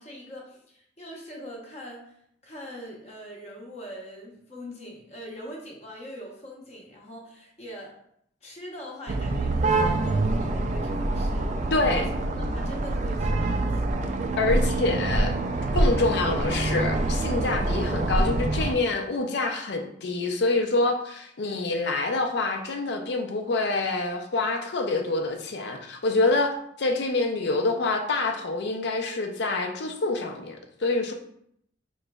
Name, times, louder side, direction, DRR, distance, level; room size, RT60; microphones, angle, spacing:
voice 1, 0.0-2.1 2.4-7.9 8.4-12.1 12.4-14.0, equal, 35° left, -2 dB, 0.8 m, -42 dB
sound 1, 9.1-18.7, right 2 dB, 40° right, 0.3 m, -25 dB
voice 2, 11.7-12.1 14.4-15.3 15.7-31.1, left 3 dB, 60° left, 4 dB, 0.5 m, -26 dB
5.0 x 3.1 x 2.3 m, 0.71 s
head